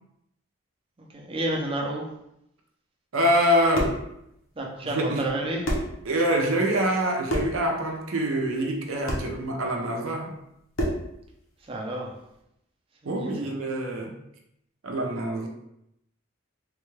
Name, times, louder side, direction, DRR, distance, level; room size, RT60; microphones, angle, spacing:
voice 1, 1.1-2.1 4.6-5.6 11.7-12.1 13.2-13.3, right 1 dB, 25° right, -1 dB, 0.5 m, -30 dB
voice 2, 3.1-4.0 4.8-5.3 6.0-10.4 13.0-14.2 14.8-15.5, equal, 85° right, 2 dB, 0.6 m, -25 dB
sound 1, 3.5-4.1 5.2-5.3 5.6-6.0 7.3-7.6 9.1-9.3 10.7-11.1, equal, 70° left, 0.8 m, -27 dB
3.3 x 2.3 x 3.2 m, 0.79 s
head